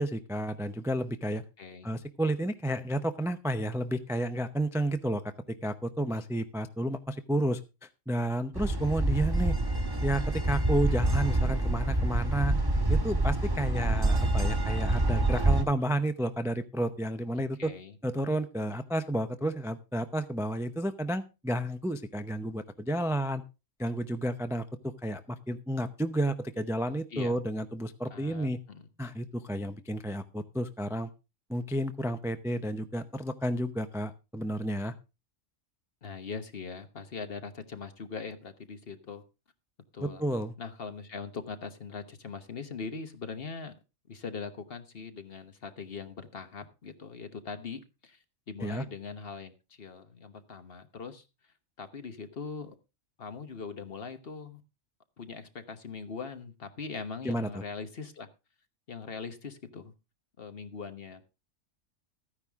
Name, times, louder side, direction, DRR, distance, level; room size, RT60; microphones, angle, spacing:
voice 1, 0.0-1.4 1.8-5.2 5.5-7.6 8.1-9.6 10.0-12.6 12.9-17.7 18.0-23.4 23.8-28.6 29.0-31.1 31.5-34.9 40.0-40.5 48.6-48.8 57.2-57.5, right 1 dB, 5° right, 0.4 m, -31 dB
voice 2, 1.6-1.9 17.4-17.9 27.1-27.4 28.1-28.9 36.0-39.2 39.9-40.2 40.6-43.7 44.1-48.2 48.5-51.2 51.8-52.7 53.2-54.6 55.2-58.3 58.9-59.9 60.4-61.2, left 5 dB, 50° left, 1.3 m, -41 dB
sound 1, 8.5-15.6, right 2 dB, 20° right, 1.3 m, -27 dB
14.0 x 9.7 x 3.5 m
omnidirectional pair, 1.3 m